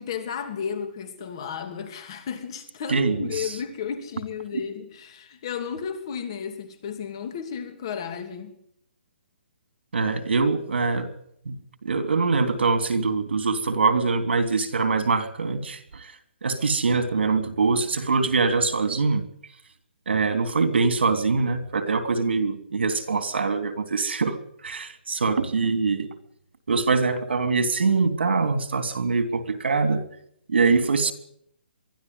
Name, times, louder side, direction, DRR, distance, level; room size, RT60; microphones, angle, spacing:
voice 1, 0.0-8.6, left 7 dB, 30° left, 2.7 m, -33 dB
voice 2, 2.9-3.5 9.9-11.1 11.4-16.1 16.4-19.2 20.1-24.4 24.6-26.1 26.7-30.0 30.5-31.1, right 4 dB, 85° right, 3.3 m, -23 dB
23.0 x 13.5 x 9.8 m
hypercardioid pair, 175°, 6 cm